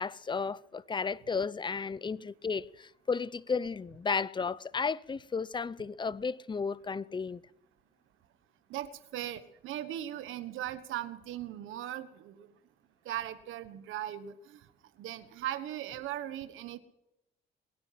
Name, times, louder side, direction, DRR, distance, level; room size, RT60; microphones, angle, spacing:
voice 1, 0.0-7.4, left 5 dB, 25° left, 0.6 m, -33 dB
voice 2, 8.7-12.5 13.0-14.6 15.0-16.8, right 12 dB, 85° right, 1.3 m, -38 dB
22.0 x 9.9 x 5.9 m
cardioid pair, 90°, 20 cm